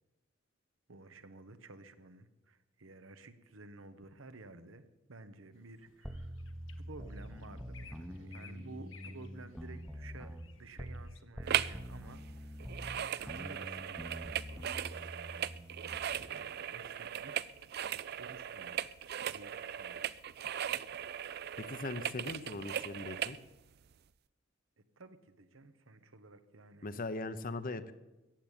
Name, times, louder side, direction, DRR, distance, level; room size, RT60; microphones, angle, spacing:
voice 1, 0.9-6.4 6.8-14.3 14.5-14.9 16.0-17.6 18.2-20.1 25.0-26.9, right 3 dB, 85° right, 10 dB, 1.1 m, -53 dB
sound 1, 5.5-11.2, left 6 dB, 70° left, 1.3 m, -60 dB
sound 2, 6.0-11.1 11.4-16.1, equal, ahead, 0.9 m, -45 dB
sound 3, 11.5-11.8 12.1-23.4 23.9-24.0, right 10 dB, 55° right, 0.4 m, -38 dB
voice 2, 21.6-23.4 26.8-27.9, left 2 dB, 45° left, 12 dB, 0.8 m, -40 dB
15.0 x 8.3 x 9.0 m, 1.0 s
head